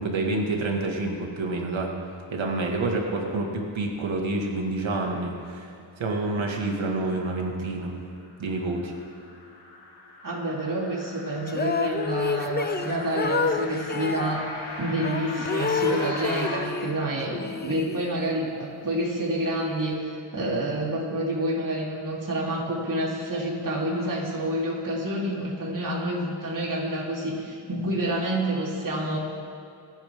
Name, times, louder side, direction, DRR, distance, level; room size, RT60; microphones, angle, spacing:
voice 1, 0.0-1.9 2.3-5.7 6.0-7.9 8.4-8.9, right 2 dB, 75° right, 0 dB, 2.2 m, -28 dB
sound 1, 8.2-16.6, left 2 dB, 70° left, 3.9 m, -39 dB
voice 2, 10.2-14.5 14.8-20.0 20.3-29.2, right 1 dB, 40° right, -5 dB, 3.6 m, -28 dB
sound 2, 11.5-14.4 15.0-17.0 17.3-18.4, left 5 dB, 20° left, 0.5 m, -29 dB
26.0 x 9.7 x 3.8 m, 2.5 s
wide cardioid pair, 90°, 47 cm